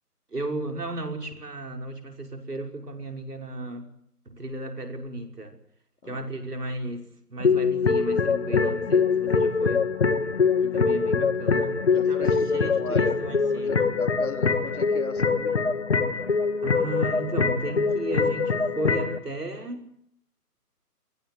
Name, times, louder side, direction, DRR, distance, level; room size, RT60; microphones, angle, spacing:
voice 1, 0.3-3.9 4.3-5.6 6.0-9.8 10.6-13.9 16.6-19.9, right 1 dB, 75° right, 4 dB, 5.8 m, -34 dB
sound 1, 7.4-19.2, left 5 dB, 45° left, 2.1 m, -23 dB
voice 2, 11.9-13.2 13.5-15.7, left 3 dB, 65° left, 7 dB, 3.4 m, -36 dB
27.0 x 20.0 x 8.1 m, 0.70 s
figure-of-eight pair, 160°, 47 cm